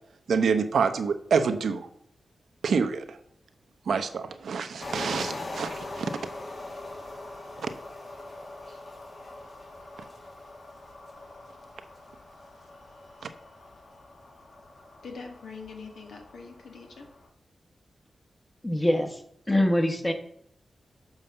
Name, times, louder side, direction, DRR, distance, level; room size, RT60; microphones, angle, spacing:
voice 1, 0.3-1.9 2.6-3.2 3.9-6.1, right 5 dB, 85° right, 9 dB, 0.8 m, -27 dB
sound 1, 4.8-17.3, left 2 dB, 50° left, 1.4 m, -42 dB
voice 2, 15.0-17.1, left 4 dB, 85° left, 2 dB, 1.8 m, -43 dB
voice 3, 18.6-19.2 19.5-20.1, left 1 dB, 15° left, 6 dB, 1.2 m, -24 dB
7.2 x 4.9 x 6.8 m, 0.68 s
wide cardioid pair, 100°, 0 cm